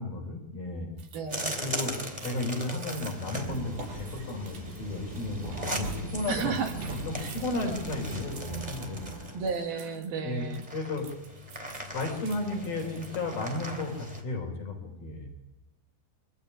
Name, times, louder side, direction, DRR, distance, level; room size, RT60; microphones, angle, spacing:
voice 1, 0.0-1.0 1.6-6.6 6.9-9.0 10.2-11.1 11.9-15.3, left 2 dB, 60° left, 2 dB, 6.1 m, -34 dB
sound 1, 1.0-10.1 10.4-13.2, right 7 dB, 80° right, 4.8 m, -52 dB
voice 2, 1.1-1.6 6.3-6.8 9.3-10.6, right 5 dB, 65° right, 4 dB, 3.9 m, -33 dB
sound 2, 1.3-9.6 10.4-14.2, equal, 10° right, 2.8 m, -39 dB
Squeak, 3.3-9.7, right 3 dB, 50° right, 6.4 m, -40 dB
24.5 x 16.0 x 9.9 m, 0.98 s
omnidirectional pair, 4.8 m